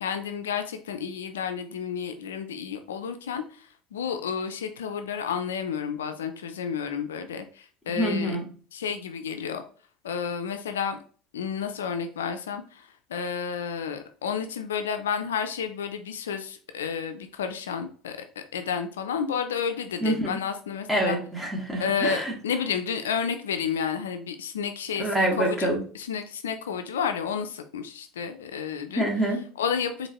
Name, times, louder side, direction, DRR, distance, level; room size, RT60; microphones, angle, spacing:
voice 1, 0.0-3.4 3.9-8.4 8.7-9.6 10.0-11.0 11.3-12.8 13.1-21.2 21.8-25.7 25.9-29.0 29.6-30.1, left 7 dB, 85° left, 8 dB, 0.4 m, -31 dB
voice 2, 7.9-8.4 20.0-20.4 20.9-22.3 25.0-25.8 28.9-29.4, right 1 dB, 5° right, -2 dB, 1.7 m, -26 dB
4.4 x 2.6 x 2.9 m, 0.42 s
hypercardioid pair, 75°, 0 cm